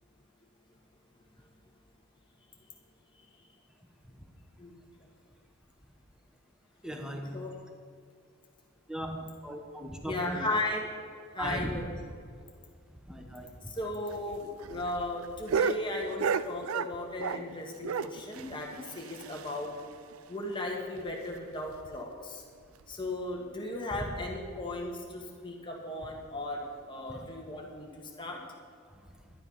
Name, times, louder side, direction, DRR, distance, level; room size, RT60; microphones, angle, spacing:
voice 1, 6.8-7.5 8.9-10.5 11.4-11.7 13.1-13.7 27.1-27.2, equal, 5° right, 3 dB, 1.2 m, -38 dB
voice 2, 10.0-10.8 11.3-11.8 13.7-19.8 20.3-22.4 22.9-28.4, left 2 dB, 20° left, 0 dB, 1.6 m, -36 dB
sound 1, 14.1-17.5 17.8-19.8 20.1-20.2 20.5-20.6 21.0-21.1 21.7-22.0 22.8-22.9, right 6 dB, 80° right, 0.5 m, -33 dB
11.5 x 11.5 x 5.5 m, 2.2 s
head